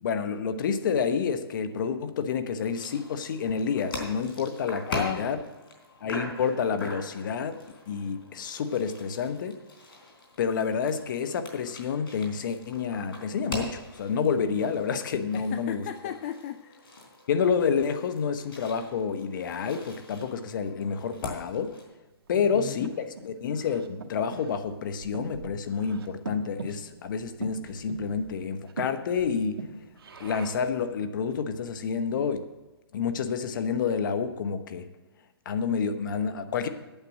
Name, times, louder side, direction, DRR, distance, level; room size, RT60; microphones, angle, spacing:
voice 1, 0.0-5.4 6.0-7.6 7.9-9.6 10.4-15.8 17.3-21.8 22.3-22.9 23.2-29.6 30.2-32.5 32.9-34.9 35.4-36.7, left 6 dB, 55° left, 10 dB, 1.0 m, -29 dB
sound 1, 2.7-21.8, left 2 dB, 70° left, 3.7 m, -42 dB
voice 2, 4.9-5.3 15.3-16.8 22.3-22.9, left 10 dB, 35° left, 10 dB, 0.4 m, -36 dB
Breathing, 22.3-30.8, right 3 dB, 75° right, 1.4 m, -42 dB
8.9 x 7.7 x 7.4 m, 1.1 s
hypercardioid pair, 145°, 13 cm